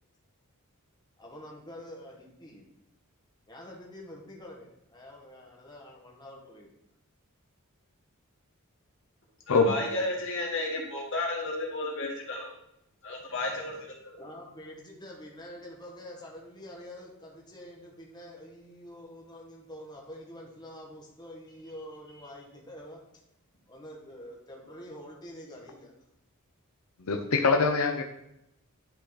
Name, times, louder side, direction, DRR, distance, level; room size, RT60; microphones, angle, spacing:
voice 1, 1.2-2.7 3.5-6.7 13.3-13.4 14.2-23.0 23.7-25.9, equal, 20° left, -2 dB, 1.5 m, -46 dB
voice 2, 9.5-12.5 13.0-14.2, left 2 dB, 60° left, 0 dB, 1.9 m, -33 dB
voice 3, 27.0-28.0, left 4 dB, 90° left, 4 dB, 0.7 m, -24 dB
10.5 x 4.1 x 4.0 m, 0.81 s
head